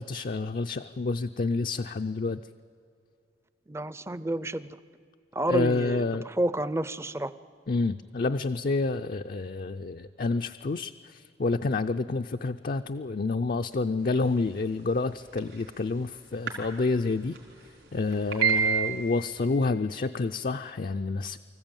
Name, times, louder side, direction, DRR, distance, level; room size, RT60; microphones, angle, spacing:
voice 1, 0.0-2.4 5.5-6.2 7.7-17.4 17.9-21.4, left 3 dB, 50° left, 7 dB, 0.4 m, -29 dB
voice 2, 3.7-4.8 5.3-6.0 6.4-7.3, right 1 dB, 15° right, 15 dB, 0.5 m, -29 dB
sound 1, 15.2-15.6 16.5-16.6 16.8-16.9 17.3-17.4 18.1-19.5, right 7 dB, 70° right, 4.1 m, -26 dB
25.0 x 14.5 x 9.0 m, 2.5 s
head